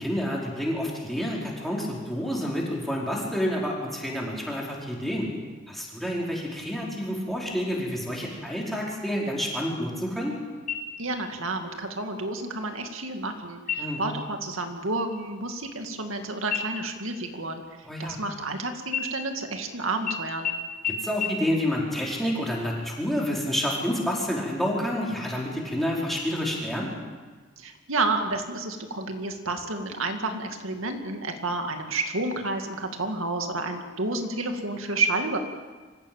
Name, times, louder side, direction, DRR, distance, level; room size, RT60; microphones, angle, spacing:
voice 1, 0.0-5.3 5.7-10.4 13.8-14.0 17.9-18.2 21.0-26.9, equal, ahead, -4 dB, 4.9 m, -29 dB
sound 1, 10.7-11.3 11.7-11.8 12.4-12.9 13.6-14.1 14.5-14.8 15.1-16.2 16.5-18.5 18.9-19.7 20.1-20.2 20.4-20.5 20.8-20.9 21.2-21.3, left 6 dB, 45° left, 3.5 m, -33 dB
voice 2, 11.0-17.6 18.0-20.5 27.6-35.4, right 2 dB, 90° right, 5 dB, 2.3 m, -30 dB
25.0 x 15.0 x 9.0 m, 1.4 s
head